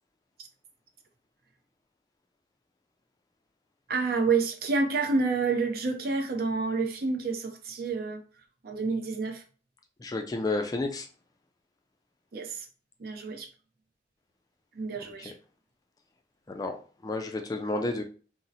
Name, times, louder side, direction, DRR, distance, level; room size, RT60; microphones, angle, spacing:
voice 1, 3.9-8.2 8.6-9.4 12.3-12.7 13.0-13.5 14.7-15.3, right 4 dB, 55° right, 0.5 m, -28 dB
voice 2, 10.0-11.1 16.5-16.8 17.0-18.0, left 2 dB, 20° left, 0.3 m, -30 dB
2.7 x 2.0 x 3.9 m
head